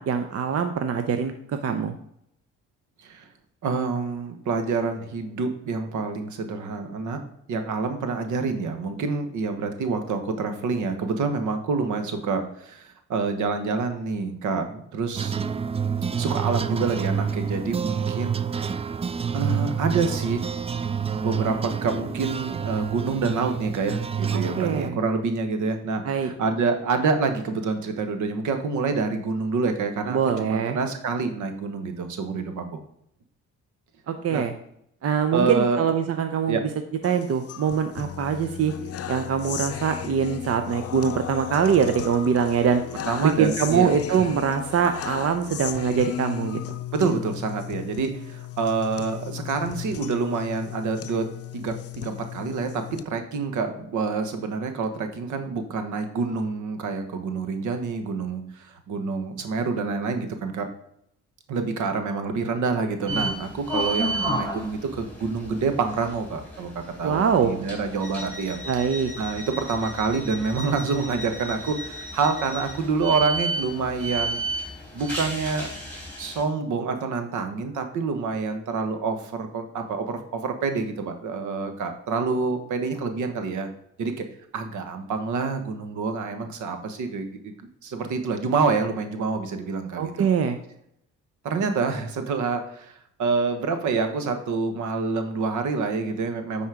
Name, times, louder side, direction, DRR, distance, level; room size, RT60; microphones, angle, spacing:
voice 1, 0.0-1.3 1.6-1.9 24.3-25.0 26.0-26.3 30.1-30.8 34.1-34.5 35.0-36.6 37.0-38.7 39.1-42.8 43.2-46.8 67.0-67.6 68.7-69.1 90.0-90.6, right 7 dB, 50° right, 8 dB, 0.7 m, -23 dB
voice 2, 3.6-7.2 7.5-15.3 16.2-18.7 19.3-20.6 21.1-32.8 34.3-34.4 35.3-35.8 36.5-36.6 43.1-44.3 46.9-51.3 51.5-60.7 61.5-68.8 69.2-74.4 74.9-75.7 76.2-83.7 84.0-84.2 84.5-90.3 91.4-92.9 93.2-96.7, right 4 dB, 75° right, 7 dB, 1.3 m, -27 dB
sound 1, 15.1-24.9, right 7 dB, 20° right, 0.3 m, -28 dB
sound 2, 37.0-53.0, left 11 dB, 50° left, 0.6 m, -36 dB
sound 3, 63.1-76.4, right 1 dB, 5° left, 3.5 m, -32 dB
9.4 x 4.3 x 4.9 m, 0.73 s
cardioid pair, 90°, 30 cm